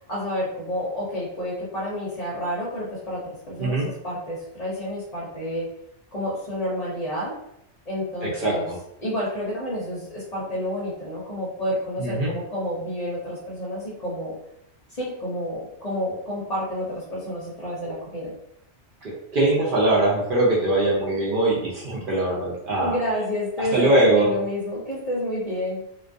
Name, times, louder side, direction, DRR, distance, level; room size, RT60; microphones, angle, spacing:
voice 1, 0.1-5.7 6.1-7.3 7.9-8.7 9.0-14.3 14.9-18.3 22.8-25.8, equal, 40° left, -6 dB, 0.7 m, -29 dB
voice 2, 8.2-8.8 12.0-12.3 19.0-22.9 23.6-24.3, right 2 dB, 60° right, -4 dB, 0.7 m, -22 dB
2.3 x 2.2 x 2.5 m, 0.79 s
omnidirectional pair, 1.2 m